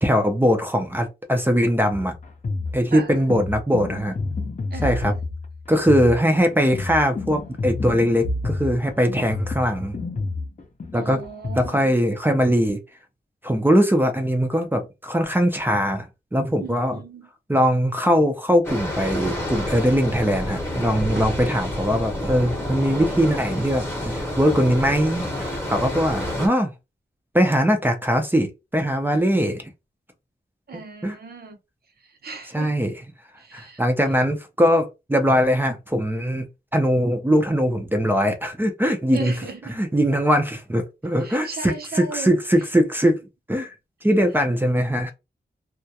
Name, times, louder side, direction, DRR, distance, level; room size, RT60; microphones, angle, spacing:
voice 1, 0.0-2.1 2.7-4.1 4.8-5.1 5.7-9.9 10.9-11.2 11.6-12.8 13.4-16.1 16.3-17.0 17.5-26.7 27.3-29.7 30.7-31.2 32.5-32.9 33.5-39.3 39.7-43.2 43.5-43.7 44.0-45.1, equal, 10° right, 0.4 m, -21 dB
sound 1, 1.9-11.7, left 3 dB, 40° left, 0.6 m, -29 dB
voice 2, 4.7-5.1 10.9-11.9 16.6-17.3 21.1-21.3 30.7-31.6 32.2-32.7 33.4-33.8 39.1-39.8 41.2-42.3, right 4 dB, 60° right, 0.7 m, -37 dB
sound 2, 18.6-26.5, left 1 dB, 15° left, 0.8 m, -29 dB
2.3 x 2.1 x 2.7 m
wide cardioid pair, 105°, 18 cm